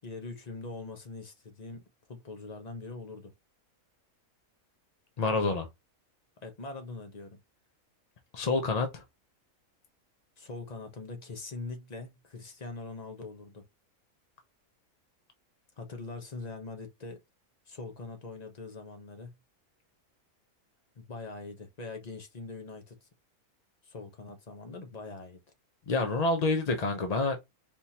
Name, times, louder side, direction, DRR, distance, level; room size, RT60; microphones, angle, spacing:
voice 1, 0.0-1.8 2.1-3.3 6.4-7.4 10.4-13.7 15.8-17.2 17.7-19.3 21.0-23.1 23.8-25.4, left 3 dB, 35° left, 0.8 m, -42 dB
voice 2, 5.2-5.7 8.3-9.0 25.9-27.4, left 3 dB, 50° left, 0.4 m, -27 dB
4.3 x 3.6 x 2.8 m
omnidirectional pair, 1.5 m